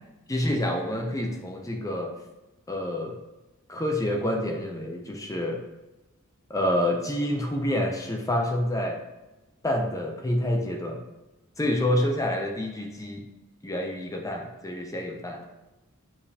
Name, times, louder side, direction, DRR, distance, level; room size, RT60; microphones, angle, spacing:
voice 1, 0.3-2.1 2.7-3.2 3.7-5.6 6.5-9.0 9.6-11.0 11.6-13.2 13.6-15.5, left 1 dB, 15° left, 2 dB, 0.5 m, -28 dB
7.1 x 5.0 x 2.8 m, 1.0 s
head